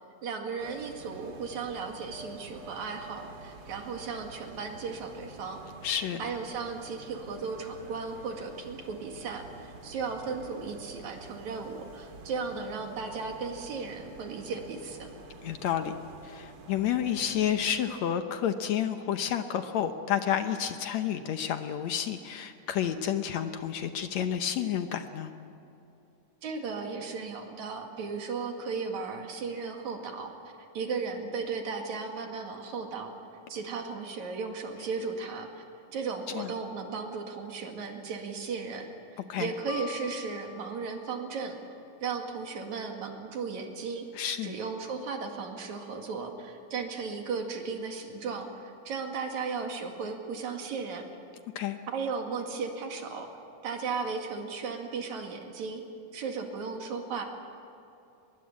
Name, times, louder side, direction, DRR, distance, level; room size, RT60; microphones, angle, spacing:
voice 1, 0.2-5.6 6.2-15.1 26.4-30.3 30.7-33.1 33.5-35.6 35.9-41.6 42.0-44.1 44.4-51.0 51.9-53.3 53.6-55.8 56.1-57.2, right 5 dB, 65° right, 3 dB, 3.3 m, -36 dB
sound 1, 0.6-17.8, right 2 dB, 50° right, 2.7 m, -48 dB
voice 2, 5.8-6.2 15.4-16.0 16.2-25.3 36.4-36.5 39.3-39.5 44.2-44.6 51.6-51.8, left 9 dB, 70° left, 8 dB, 2.0 m, -30 dB
Piano, 39.7-41.8, left 13 dB, 85° left, 2.4 m, -45 dB
23.0 x 22.0 x 8.5 m, 2.8 s
omnidirectional pair, 3.7 m